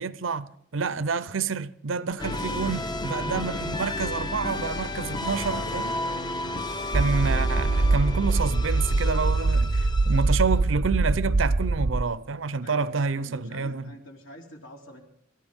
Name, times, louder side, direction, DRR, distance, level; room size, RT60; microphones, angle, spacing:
voice 1, 0.0-6.0 6.9-13.8, right 4 dB, 85° right, 0.7 m, -28 dB
sound 1, 2.2-10.6, left 1 dB, 20° left, 0.7 m, -32 dB
sound 2, 6.9-12.0, right 3 dB, 40° right, 0.5 m, -23 dB
voice 2, 12.6-15.0, equal, 80° left, 3.3 m, -47 dB
27.0 x 13.5 x 3.7 m
head